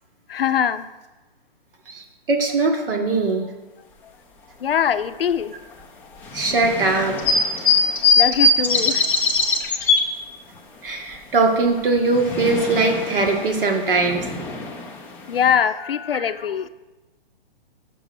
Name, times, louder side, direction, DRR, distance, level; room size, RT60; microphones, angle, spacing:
voice 1, 0.3-0.9 4.6-5.5 8.2-9.1 9.4-9.5 15.3-16.7, left 8 dB, 70° left, 12 dB, 0.6 m, -22 dB
voice 2, 1.9-3.5 6.3-7.2 10.8-14.3, right 3 dB, 65° right, 2 dB, 1.9 m, -21 dB
sound 1, 6.2-10.0 11.8-15.5, left 3 dB, 5° left, 0.4 m, -22 dB
6.9 x 6.1 x 6.2 m, 1.1 s
hypercardioid pair, 135°, 30 cm